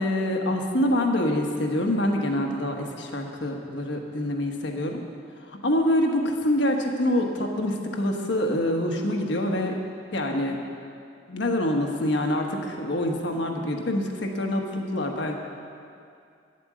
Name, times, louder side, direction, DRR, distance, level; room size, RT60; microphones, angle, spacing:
voice 1, 0.0-5.0 5.6-9.8 10.1-10.6 11.3-15.3, left 1 dB, 70° left, 2 dB, 1.3 m, -25 dB
9.6 x 8.7 x 7.5 m, 2.4 s
head